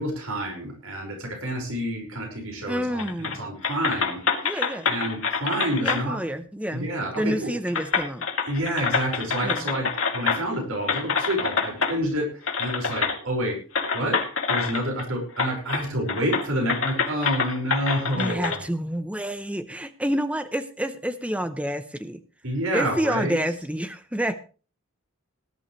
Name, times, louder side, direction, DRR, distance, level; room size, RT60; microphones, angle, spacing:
voice 1, 0.0-4.2 4.9-6.2 6.7-7.5 8.5-13.6 13.9-14.2 14.5-18.6 22.4-23.3, equal, 80° right, 1 dB, 5.5 m, -28 dB
voice 2, 2.7-3.4 4.4-4.9 5.8-6.9 7.2-8.3 9.4-9.7 18.2-22.2 22.7-24.4, equal, 5° right, 10 dB, 0.7 m, -28 dB
sound 1, 3.0-3.4 3.6-6.0 7.1-7.2 7.7-10.5 10.9-11.9 12.5-13.2 13.7-15.0 15.4-15.8 16.1-18.6, left 5 dB, 70° left, 2.5 m, -26 dB
19.0 x 11.5 x 3.2 m, 0.36 s
head